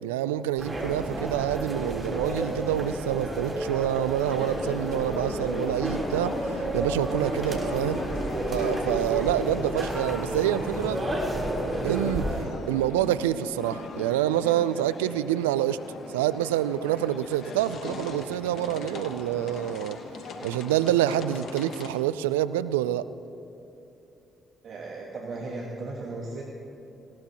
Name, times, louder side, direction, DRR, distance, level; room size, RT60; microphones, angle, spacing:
voice 1, 0.0-6.4 6.7-8.1 8.5-11.0 11.8-12.3 12.7-15.8 16.1-20.0 20.4-23.1, right 12 dB, 85° right, 15 dB, 0.3 m, -27 dB
sound 1, 0.6-12.4, right 1 dB, 30° right, 3.5 m, -31 dB
sound 2, 4.2-21.9, left 3 dB, 60° left, 1.2 m, -39 dB
voice 2, 24.6-26.4, right 3 dB, 55° right, -1 dB, 1.5 m, -36 dB
19.0 x 17.0 x 2.9 m, 3.0 s
hypercardioid pair, 45°, 0 cm